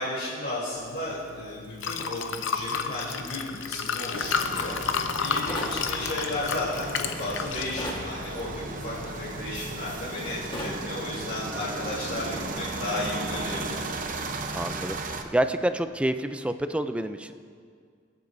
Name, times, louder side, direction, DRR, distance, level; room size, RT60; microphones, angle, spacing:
voice 1, 0.0-4.8 5.2-13.8, left 1 dB, 55° left, -10 dB, 3.2 m, -34 dB
Liquid, 0.8-11.3, left 6 dB, 80° left, 0.7 m, -33 dB
sound 1, 4.1-15.2, right 3 dB, 45° right, 0.8 m, -36 dB
sound 2, 5.5-5.8 7.8-8.1 10.5-10.8, left 1 dB, 25° left, 1.5 m, -33 dB
voice 2, 14.5-15.0 15.2-17.3, right 1 dB, 5° right, 10 dB, 0.4 m, -28 dB
23.5 x 8.2 x 2.7 m, 2.1 s
head